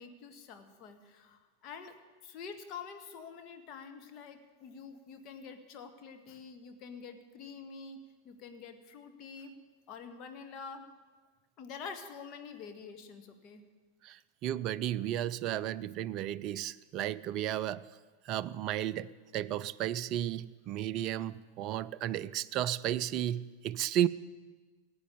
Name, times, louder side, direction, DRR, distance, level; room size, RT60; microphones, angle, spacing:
voice 1, 0.0-1.9 2.2-8.0 8.2-9.5 9.9-10.9 11.6-13.6, left 5 dB, 35° left, 5 dB, 1.7 m, -47 dB
voice 2, 14.0-17.8 18.3-24.1, right 12 dB, 40° right, 15 dB, 0.5 m, -33 dB
16.5 x 8.7 x 9.6 m, 1.4 s
figure-of-eight pair, 90°, 0 cm